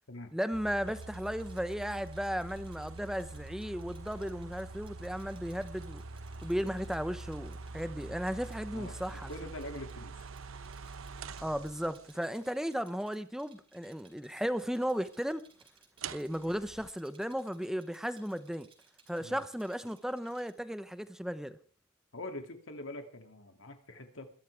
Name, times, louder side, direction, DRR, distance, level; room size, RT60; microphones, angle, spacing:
voice 1, 0.3-6.0 6.4-9.3 11.4-15.4 16.1-18.7 19.1-21.6, equal, ahead, 12 dB, 0.9 m, -35 dB
sound 1, 0.5-12.3 16.0-16.9, right 3 dB, 75° right, 0.8 m, -45 dB
Rattle, 0.9-20.5, right 5 dB, 25° right, 4.4 m, -63 dB
voice 2, 8.7-10.2 16.5-16.6 19.2-19.4 22.1-24.3, left 1 dB, 65° left, 5 dB, 2.7 m, -44 dB
22.5 x 13.0 x 3.5 m, 0.43 s
head